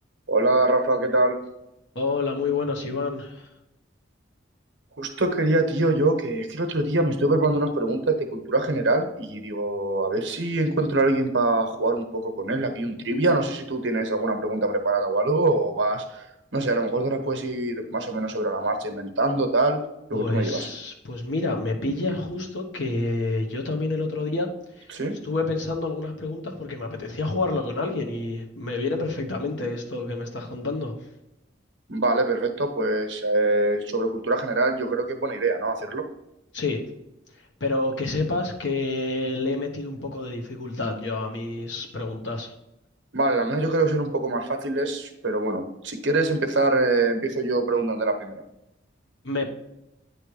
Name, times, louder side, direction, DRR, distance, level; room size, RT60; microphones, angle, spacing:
voice 1, 0.3-1.4 4.9-16.2 16.5-19.8 20.1-20.7 22.1-22.2 24.9-25.2 31.9-36.0 43.1-48.4, right 2 dB, 75° right, 5 dB, 0.9 m, -24 dB
voice 2, 1.9-3.5 20.1-24.5 24.8-24.9 25.2-30.9 36.5-36.8 37.6-42.5 49.2-49.5, left 3 dB, 70° left, 2 dB, 1.1 m, -28 dB
9.1 x 3.3 x 4.7 m, 0.89 s
head